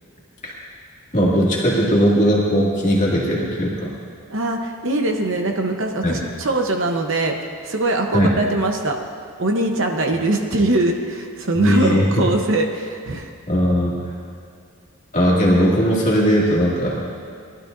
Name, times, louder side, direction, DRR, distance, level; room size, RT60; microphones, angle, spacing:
voice 1, 1.1-3.9 6.0-6.2 8.1-8.3 11.6-12.2 13.5-14.0 15.1-17.0, equal, 30° left, -5 dB, 2.2 m, -18 dB
voice 2, 4.3-7.3 7.6-9.0 9.4-13.3, right 2 dB, 60° right, 3 dB, 0.9 m, -22 dB
19.0 x 12.0 x 2.6 m, 2.2 s
head